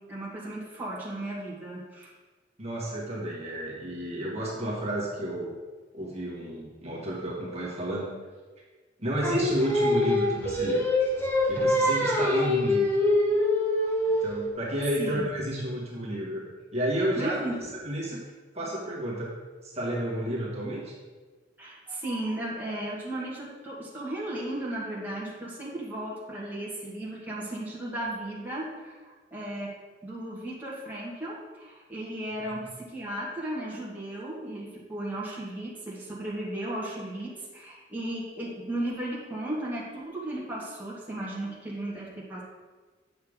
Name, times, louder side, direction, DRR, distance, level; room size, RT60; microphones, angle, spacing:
voice 1, 0.0-2.1 15.0-15.2 17.2-17.6 21.6-28.9 29.3-29.7 30.0-32.6 32.9-42.4, right 1 dB, 10° right, -6 dB, 1.8 m, -35 dB
voice 2, 2.6-5.5 5.9-8.1 9.0-10.9 11.4-12.9 14.2-16.4 16.7-17.4 17.7-18.2 18.5-19.3 19.6-21.0 32.4-32.7, right 1 dB, 35° right, -4 dB, 1.8 m, -31 dB
Singing, 9.2-14.4, left 1 dB, 15° left, 1.3 m, -24 dB
8.9 x 6.7 x 3.7 m, 1.4 s
head